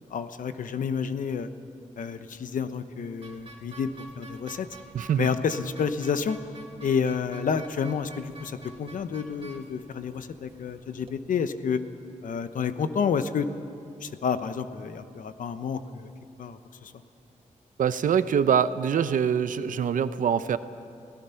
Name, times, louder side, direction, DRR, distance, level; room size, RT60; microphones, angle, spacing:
voice 1, 0.1-1.5 2.0-4.7 5.2-6.4 6.8-11.8 12.2-13.5 14.0-16.1 16.4-16.9, left 6 dB, 85° left, 10 dB, 1.0 m, -29 dB
sound 1, 3.2-11.2, right 2 dB, 45° right, 2.2 m, -49 dB
voice 2, 4.9-5.3 17.8-20.6, right 8 dB, 85° right, 12 dB, 0.8 m, -24 dB
29.5 x 17.0 x 5.8 m, 2.7 s
wide cardioid pair, 115°, 13 cm